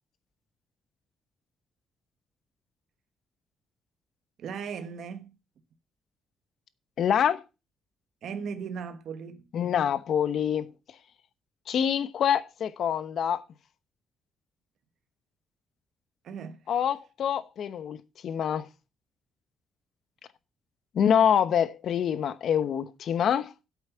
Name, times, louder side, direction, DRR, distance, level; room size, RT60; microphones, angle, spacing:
voice 1, 4.4-5.4 8.2-9.4 16.2-16.6, right 6 dB, 60° right, 1.2 m, -37 dB
voice 2, 7.0-7.4 9.5-10.7 11.7-13.4 16.7-18.0 18.2-18.7 20.9-23.5, left 8 dB, 55° left, 0.9 m, -25 dB
8.5 x 8.0 x 7.0 m
cardioid pair, 145°, 0 cm